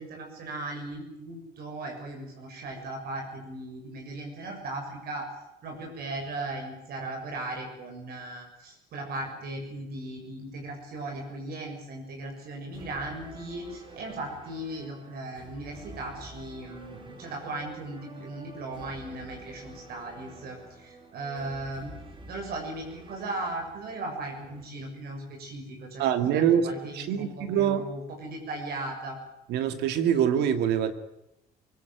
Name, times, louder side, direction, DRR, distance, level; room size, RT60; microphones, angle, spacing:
voice 1, 0.0-5.3 5.6-21.9 22.3-29.2, right 2 dB, 65° right, 6.9 m, -37 dB
sound 1, 12.7-24.7, right 2 dB, 30° right, 4.1 m, -48 dB
voice 2, 26.0-26.7 26.9-27.8 29.5-30.9, right 9 dB, 80° right, 2.4 m, -24 dB
23.0 x 17.5 x 9.2 m
cardioid pair, 110°, 17 cm